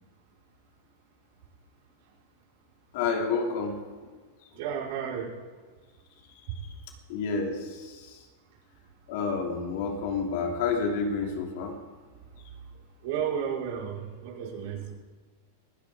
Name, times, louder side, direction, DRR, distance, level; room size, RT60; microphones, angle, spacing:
voice 1, 2.9-3.8 7.1-7.6 9.1-11.7, left 5 dB, 55° left, 2 dB, 3.0 m, -29 dB
voice 2, 4.5-5.4 6.5-6.6 13.0-14.9, right 8 dB, 55° right, -3 dB, 5.6 m, -32 dB
19.5 x 17.5 x 3.9 m, 1.4 s
supercardioid pair, 160°, 0 cm